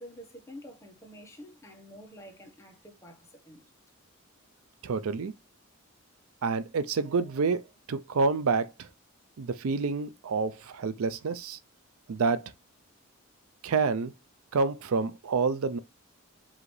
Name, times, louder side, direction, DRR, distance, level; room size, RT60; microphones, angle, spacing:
voice 1, 0.0-3.6, equal, 15° left, 1.0 m, -48 dB
voice 2, 4.8-5.3 6.4-8.9 9.4-11.6 12.1-12.5 13.6-14.1 14.5-15.8, right 4 dB, 85° right, 0.5 m, -28 dB
4.8 x 2.8 x 3.1 m
head